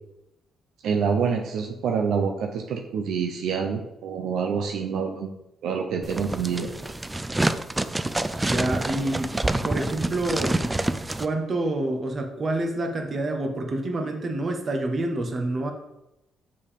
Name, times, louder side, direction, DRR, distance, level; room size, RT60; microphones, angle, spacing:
voice 1, 0.8-5.3 5.6-6.7, right 6 dB, 80° right, 3 dB, 0.6 m, -27 dB
sound 1, 6.0-11.3, right 2 dB, 15° right, 0.4 m, -27 dB
voice 2, 8.3-9.4 9.6-10.6 11.2-15.7, right 2 dB, 40° right, 4 dB, 1.2 m, -27 dB
6.6 x 5.3 x 3.6 m, 0.89 s
cardioid pair, 90°, 0 cm